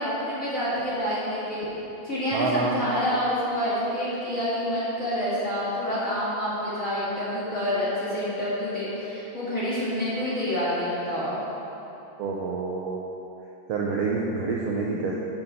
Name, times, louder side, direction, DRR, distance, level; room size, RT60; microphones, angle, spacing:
voice 1, 0.0-1.6 2.0-11.3, equal, 35° left, -10 dB, 1.6 m, -27 dB
voice 2, 2.3-2.8 12.2-13.0 13.7-15.2, right 4 dB, 90° right, -2 dB, 1.4 m, -27 dB
12.0 x 5.9 x 4.0 m, 3.0 s
omnidirectional pair, 3.6 m